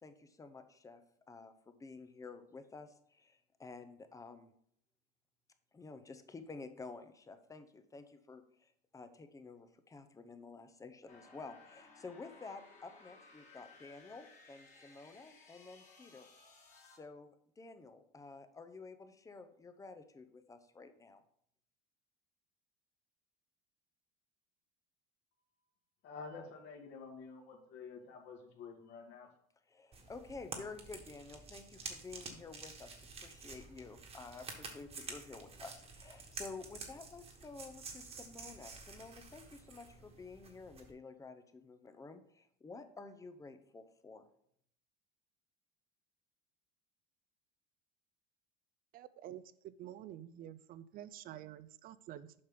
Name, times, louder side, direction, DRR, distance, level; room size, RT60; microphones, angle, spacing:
voice 1, 0.0-1.0 1.3-4.5 5.7-16.3 16.8-21.2 29.7-44.2, left 4 dB, 15° left, 0.7 m, -51 dB
sound 1, 11.1-17.0, left 3 dB, 35° left, 2.1 m, -60 dB
voice 2, 26.0-29.3, left 5 dB, 60° left, 2.1 m, -49 dB
sound 2, 29.9-40.9, right 4 dB, 30° right, 1.5 m, -50 dB
voice 3, 48.9-52.3, right 12 dB, 45° right, 0.5 m, -49 dB
7.7 x 5.3 x 3.8 m
supercardioid pair, 115°, 20 cm